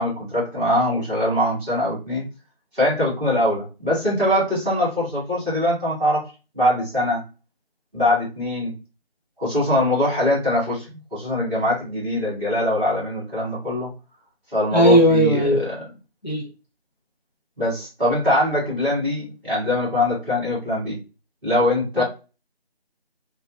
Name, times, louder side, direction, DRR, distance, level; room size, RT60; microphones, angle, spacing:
voice 1, 0.0-2.3 2.7-6.2 6.5-7.2 7.9-8.7 9.4-13.9 14.5-15.6 17.6-21.0 21.4-22.0, left 1 dB, ahead, -9 dB, 1.1 m, -22 dB
voice 2, 14.7-15.7 16.2-16.5 22.0-22.1, equal, 45° left, -2 dB, 0.5 m, -17 dB
3.0 x 2.2 x 2.3 m, 0.30 s
figure-of-eight pair, 165°, 31 cm